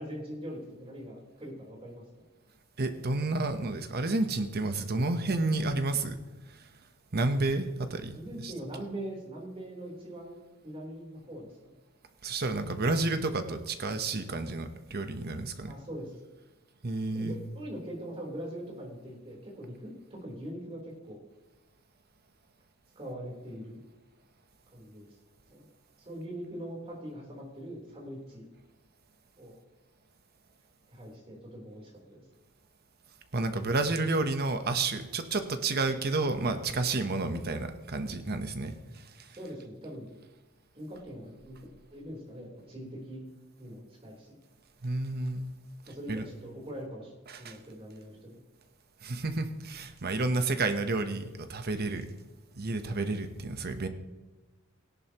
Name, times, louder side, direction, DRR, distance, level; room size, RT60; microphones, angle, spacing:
voice 1, 0.0-2.0 8.1-10.4 10.6-11.5 15.7-16.1 17.1-21.2 23.0-23.8 24.7-25.1 25.5-25.6 26.0-28.4 29.4-29.5 30.9-32.2 39.4-40.1 40.7-41.6 41.9-43.3 43.6-44.4 45.9-48.4, equal, 30° right, -2 dB, 3.7 m, -42 dB
voice 2, 2.8-6.2 7.1-8.2 8.4-8.5 12.2-15.7 16.8-17.3 33.3-38.7 44.8-45.5 46.1-46.2 47.3-47.6 49.0-52.0 52.6-53.9, right 3 dB, 50° right, 8 dB, 1.0 m, -30 dB
17.0 x 11.0 x 3.0 m, 1.1 s
head